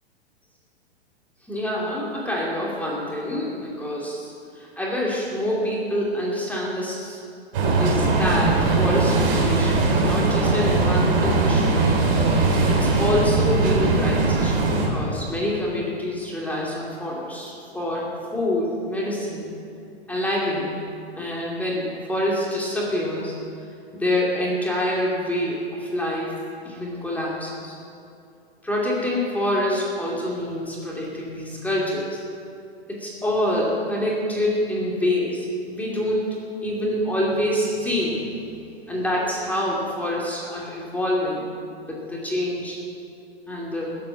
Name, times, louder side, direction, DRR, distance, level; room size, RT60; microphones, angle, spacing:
voice 1, 1.5-7.2 7.8-11.8 12.7-19.4 20.1-20.7 21.1-23.3 23.9-26.3 26.6-27.7 28.6-32.2 32.9-36.4 36.6-38.2 38.8-41.4 41.9-42.8 43.5-44.0, left 1 dB, 5° left, -5 dB, 2.7 m, -26 dB
sound 1, 7.5-14.9, right 3 dB, 55° right, 3.8 m, -20 dB
20.0 x 8.5 x 5.9 m, 2.4 s
hypercardioid pair, 115°, 33 cm